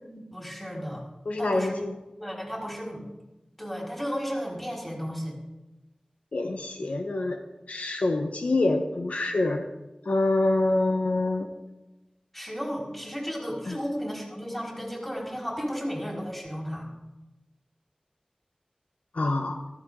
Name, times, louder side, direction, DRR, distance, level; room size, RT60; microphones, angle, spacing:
voice 1, 0.1-1.0 1.4-1.7 2.2-3.0 3.6-5.4 12.3-16.9, equal, 10° left, 4.6 m, -34 dB
voice 2, 1.2-1.9 6.3-7.4 7.7-9.7 10.0-11.5 13.7-13.8 19.1-19.6, left 2 dB, 85° left, 1.1 m, -26 dB
14.5 x 14.0 x 3.8 m
wide cardioid pair, 50°, 2 cm